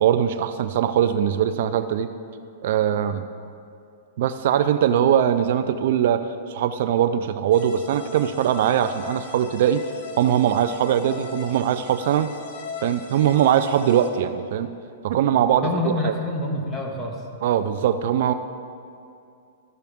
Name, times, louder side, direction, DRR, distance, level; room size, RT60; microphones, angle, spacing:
voice 1, 0.0-2.1 2.6-3.2 4.2-9.8 10.2-12.3 12.8-14.7 15.0-16.1 17.4-18.3, right 9 dB, 65° right, 11 dB, 0.4 m, -21 dB
sound 1, 7.5-14.1, left 5 dB, 55° left, 1.1 m, -39 dB
voice 2, 15.6-17.2, left 2 dB, 15° left, -1 dB, 1.6 m, -26 dB
13.5 x 6.7 x 3.6 m, 2.5 s
hypercardioid pair, 130°, 0 cm